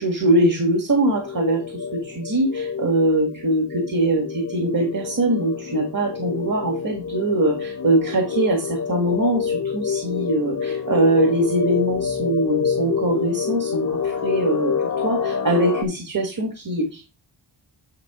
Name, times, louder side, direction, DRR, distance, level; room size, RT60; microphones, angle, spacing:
voice 1, 0.0-17.0, right 1 dB, 50° right, 3 dB, 1.5 m, -22 dB
sound 1, 0.9-15.8, left 6 dB, 45° left, 0.7 m, -27 dB
9.6 x 3.2 x 4.8 m, 0.29 s
wide cardioid pair, 140°, 43 cm